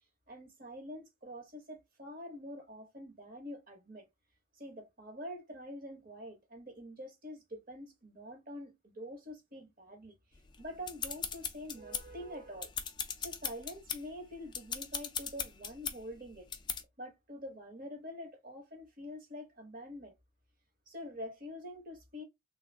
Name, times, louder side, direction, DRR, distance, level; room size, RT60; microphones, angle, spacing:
voice 1, 0.3-4.1 4.6-10.1 10.6-12.7 13.2-16.5 17.0-20.1 20.9-22.2, equal, 40° right, 1.1 m, -46 dB
sound 1, 10.5-12.2 12.6-14.0 14.5-16.0 16.5-16.8, left 7 dB, 20° left, 0.3 m, -38 dB
3.4 x 2.3 x 3.2 m
head